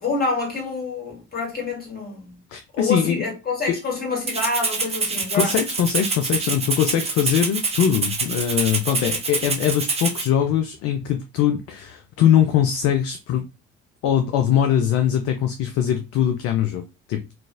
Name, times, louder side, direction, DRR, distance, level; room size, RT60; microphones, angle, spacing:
voice 1, 0.0-2.4 2.7-5.5, left 3 dB, 25° left, 1.5 m, -27 dB
voice 2, 2.5-3.2 3.7-3.8 5.3-13.5 14.0-16.8 17.1-17.2, left 9 dB, 45° left, 0.4 m, -21 dB
Rattle (instrument), 4.3-10.3, right 4 dB, 20° right, 0.5 m, -26 dB
2.9 x 2.4 x 2.4 m
figure-of-eight pair, 50°, 33 cm